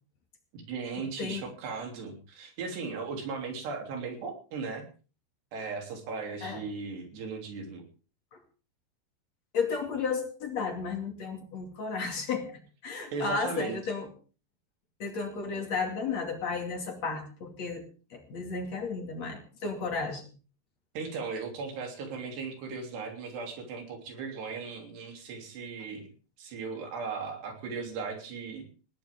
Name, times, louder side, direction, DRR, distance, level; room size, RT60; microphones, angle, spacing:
voice 1, 0.5-4.9 5.5-7.8 13.1-13.8 21.0-26.1 26.4-28.7, right 4 dB, 85° right, 3 dB, 5.4 m, -37 dB
voice 2, 9.5-14.1 15.0-17.9 18.1-20.3, left 5 dB, 45° left, 4 dB, 3.4 m, -33 dB
20.5 x 17.0 x 3.7 m, 0.38 s
omnidirectional pair, 4.7 m